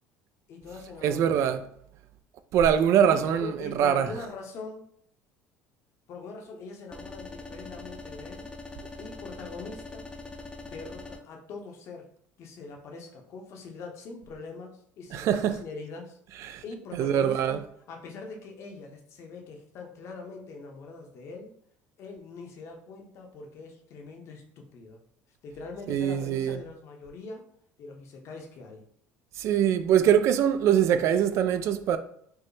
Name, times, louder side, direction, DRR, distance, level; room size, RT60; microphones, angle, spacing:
voice 1, 0.5-1.6 3.0-4.9 6.1-8.5 9.0-10.1 10.4-12.0 12.4-16.2 16.6-17.6 17.9-21.5 22.0-25.0 25.4-27.5 27.8-28.8, left 4 dB, 55° left, 0.8 m, -42 dB
voice 2, 1.0-1.6 2.5-4.1 15.1-15.6 16.4-16.6 16.9-17.6 25.9-26.6 29.4-32.0, right 9 dB, 55° right, 0.3 m, -23 dB
sound 1, 6.9-11.2, left 3 dB, 15° left, 0.4 m, -42 dB
4.6 x 2.0 x 3.2 m
cardioid pair, 120°, 6 cm